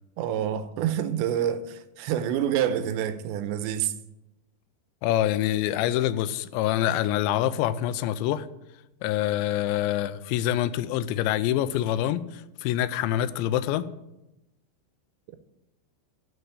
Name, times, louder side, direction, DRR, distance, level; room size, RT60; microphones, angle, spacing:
voice 1, 0.2-3.9, right 10 dB, 85° right, 2.9 m, -27 dB
voice 2, 5.0-8.5 9.0-13.9, left 12 dB, 85° left, 2.8 m, -26 dB
12.5 x 5.0 x 8.2 m
omnidirectional pair, 5.3 m